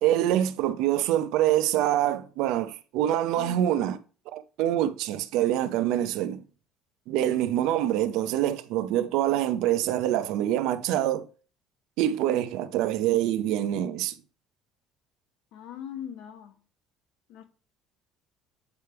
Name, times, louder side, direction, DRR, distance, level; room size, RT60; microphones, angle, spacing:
voice 1, 0.0-4.0 4.3-6.4 7.1-11.3 12.0-14.2, right 12 dB, 70° right, 0.6 m, -25 dB
voice 2, 3.3-3.8 15.5-16.6 17.3-17.4, left 9 dB, 70° left, 1.1 m, -40 dB
8.1 x 3.4 x 4.5 m
cardioid pair, 165°, 0 cm